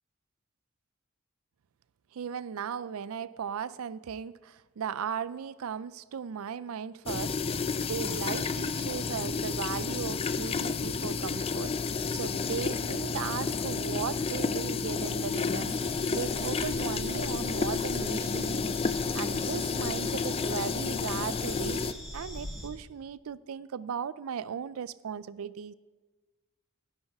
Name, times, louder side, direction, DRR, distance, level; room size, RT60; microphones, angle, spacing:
voice 1, 2.1-15.8 16.1-18.7 19.1-25.7, right 7 dB, 80° right, 0.4 m, -37 dB
sound 1, 7.1-21.9, left 4 dB, 25° left, 0.4 m, -31 dB
sound 2, 15.6-22.7, equal, ahead, 2.6 m, -44 dB
13.0 x 11.0 x 3.5 m
head